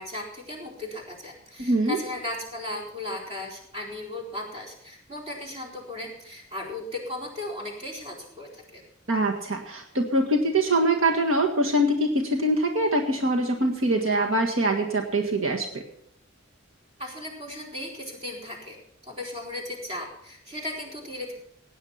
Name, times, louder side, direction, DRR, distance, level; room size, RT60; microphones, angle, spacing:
voice 1, 0.0-8.8 17.0-18.8 19.0-21.3, left 1 dB, 30° right, 0 dB, 4.2 m, -36 dB
voice 2, 1.6-2.0 9.1-15.8, right 1 dB, 80° right, 2 dB, 1.7 m, -23 dB
17.0 x 9.5 x 5.8 m, 0.69 s
head